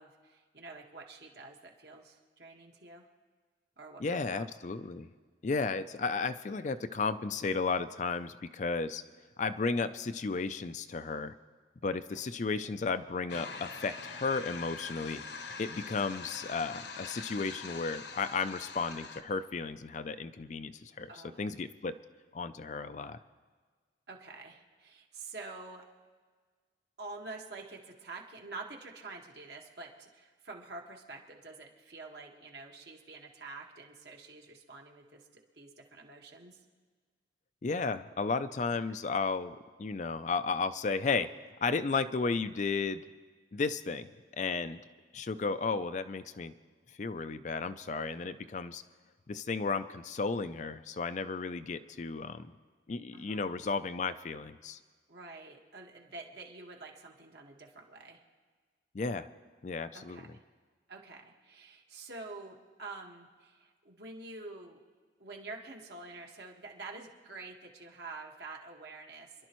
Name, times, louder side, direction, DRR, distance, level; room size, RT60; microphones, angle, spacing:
voice 1, 0.0-3.1 3.8-4.5 12.1-12.2 21.1-21.4 24.1-25.9 27.0-36.6 38.9-39.0 53.1-53.4 55.1-58.2 59.9-60.4 60.9-64.8 65.2-69.5, right 3 dB, 60° right, 1 dB, 1.6 m, -47 dB
voice 2, 4.0-5.1 5.4-9.0 9.4-11.4 11.8-15.2 15.6-21.1 21.4-22.0 22.3-23.2 37.6-41.3 41.6-43.0 43.5-44.1 44.4-44.8 45.1-46.5 47.0-48.8 49.3-52.5 52.9-54.8 58.9-59.3 59.6-60.2, left 4 dB, 40° left, 11 dB, 0.4 m, -33 dB
sound 1, 13.3-19.2, left 4 dB, 65° left, 1.0 m, -44 dB
26.5 x 11.5 x 3.1 m, 1.5 s
head